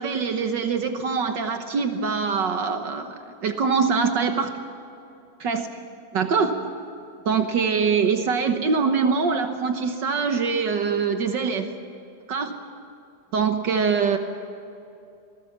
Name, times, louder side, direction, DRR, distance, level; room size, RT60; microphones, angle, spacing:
voice 1, 0.0-4.5 5.4-5.7 6.1-6.6 7.2-11.7 12.3-12.5 13.3-14.2, right 5 dB, 80° right, 6 dB, 1.0 m, -23 dB
25.5 x 20.0 x 7.3 m, 2.8 s
omnidirectional pair, 3.6 m